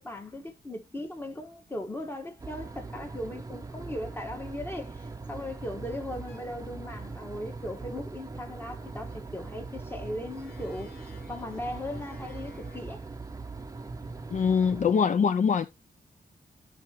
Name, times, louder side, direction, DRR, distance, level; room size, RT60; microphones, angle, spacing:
voice 1, 0.0-13.1, left 1 dB, 15° left, 1.5 m, -38 dB
sound 1, 2.4-14.9, right 3 dB, 20° right, 0.7 m, -41 dB
sound 2, 6.0-12.8, left 4 dB, 70° left, 3.6 m, -56 dB
voice 2, 14.3-15.8, left 6 dB, 50° left, 0.4 m, -24 dB
13.5 x 4.9 x 3.0 m
wide cardioid pair, 160°, 17 cm